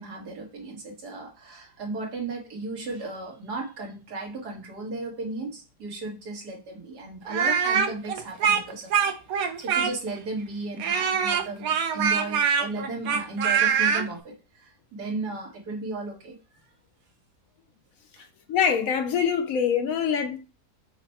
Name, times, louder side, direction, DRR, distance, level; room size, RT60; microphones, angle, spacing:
voice 1, 0.0-14.3 14.6-16.4, right 2 dB, 85° right, 2.0 m, -35 dB
Speech, 7.3-10.2 10.8-14.0, right 7 dB, 70° right, 1.1 m, -23 dB
voice 2, 18.5-20.4, left 7 dB, 65° left, 1.0 m, -24 dB
5.8 x 2.2 x 4.1 m
omnidirectional pair, 1.7 m